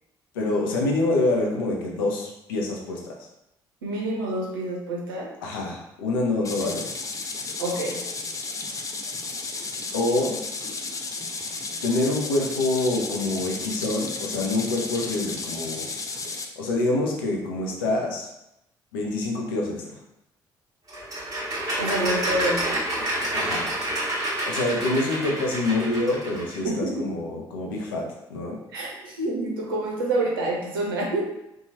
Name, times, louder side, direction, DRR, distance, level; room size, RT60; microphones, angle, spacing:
voice 1, 0.3-3.1 5.4-6.9 9.9-10.4 11.8-15.9 16.6-18.3 18.9-20.0 23.3-23.7 24.4-28.6, left 2 dB, 80° left, -1 dB, 0.5 m, -26 dB
voice 2, 3.8-5.3 7.6-8.0 21.8-22.8 26.8-27.1 28.7-31.2, right 1 dB, 85° right, -2 dB, 0.5 m, -27 dB
sound 1, 6.4-16.5, left 3 dB, 30° left, 0.4 m, -33 dB
sound 2, 20.9-26.6, right 1 dB, 35° right, 1.3 m, -28 dB
2.9 x 2.3 x 2.7 m, 0.87 s
hypercardioid pair, 45°, 12 cm